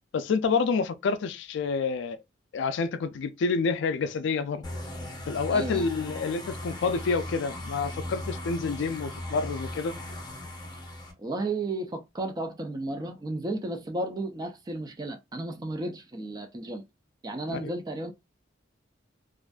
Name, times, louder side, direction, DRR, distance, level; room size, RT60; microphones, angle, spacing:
voice 1, 0.1-2.2 2.5-4.6 5.3-9.9 17.5-17.7, left 4 dB, 70° left, 0.3 m, -28 dB
sound 1, 4.6-11.1, left 1 dB, 20° left, 0.6 m, -38 dB
voice 2, 5.5-5.9 11.2-16.8 17.2-18.1, right 2 dB, 20° right, 0.3 m, -33 dB
2.5 x 2.4 x 2.2 m
head